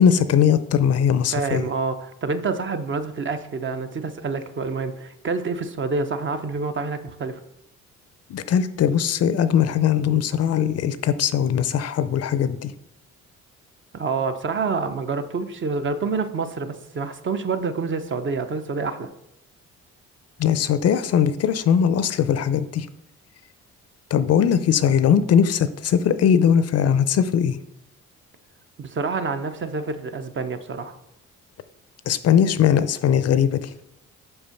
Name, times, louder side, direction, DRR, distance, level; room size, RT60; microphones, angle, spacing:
voice 1, 0.0-1.7 8.3-12.7 20.4-22.9 24.1-27.6 32.1-33.7, left 8 dB, 55° left, 13 dB, 0.5 m, -20 dB
voice 2, 1.3-7.4 13.9-19.1 28.8-31.0, right 4 dB, 40° right, 9 dB, 0.7 m, -27 dB
5.5 x 4.7 x 5.8 m, 0.81 s
cardioid pair, 90°, 30 cm